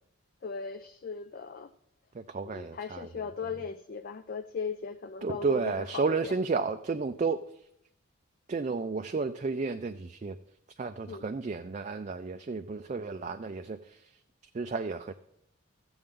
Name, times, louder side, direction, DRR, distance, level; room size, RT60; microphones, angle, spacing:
voice 1, 0.4-1.7 2.4-6.4 11.0-11.3, left 5 dB, 40° left, 9 dB, 0.4 m, -38 dB
voice 2, 2.3-3.0 5.2-7.4 8.5-10.3 10.8-13.8 14.6-15.1, right 4 dB, 35° right, 7 dB, 0.3 m, -32 dB
14.5 x 7.8 x 3.7 m, 0.77 s
head